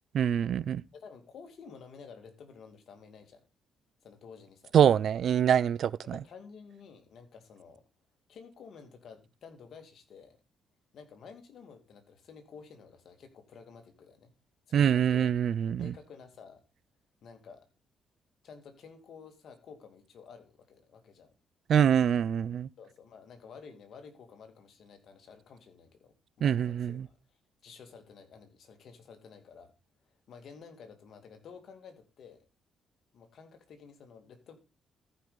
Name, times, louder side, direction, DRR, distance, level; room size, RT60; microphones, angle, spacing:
voice 1, 0.1-0.8 4.7-6.2 14.7-15.9 21.7-22.7 26.4-27.1, right 9 dB, 65° right, 0.5 m, -25 dB
voice 2, 0.9-3.4 4.0-4.7 6.1-7.8 8.3-10.4 10.9-14.3 14.7-15.3 15.8-16.6 17.2-17.6 18.4-21.3 22.8-27.2 27.6-29.7 30.3-32.4 33.1-34.6, left 6 dB, 65° left, 2.4 m, -51 dB
13.5 x 5.6 x 5.0 m
cardioid pair, 90°, 0 cm